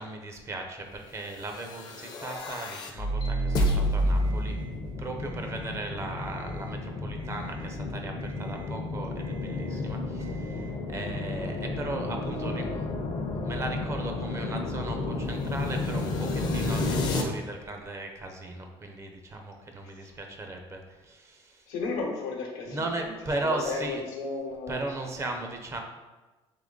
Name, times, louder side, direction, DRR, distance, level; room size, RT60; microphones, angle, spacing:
voice 1, 0.0-4.6 5.0-12.8 13.4-21.7 22.7-24.0 24.7-25.8, right 2 dB, 25° right, 3 dB, 0.6 m, -37 dB
sound 1, 1.5-17.2, left 1 dB, 40° left, 0.6 m, -31 dB
Alarm, 2.2-2.7 3.2-3.7 4.1-4.7 5.2-5.7 6.2-6.7 7.2-7.7 8.2-8.7 9.2-9.7 10.2-10.7, right 6 dB, 60° right, 0.8 m, -54 dB
voice 2, 21.7-24.8, left 3 dB, 85° left, 0 dB, 1.0 m, -34 dB
3.7 x 3.0 x 3.7 m, 1.2 s
cardioid pair, 120°, 11 cm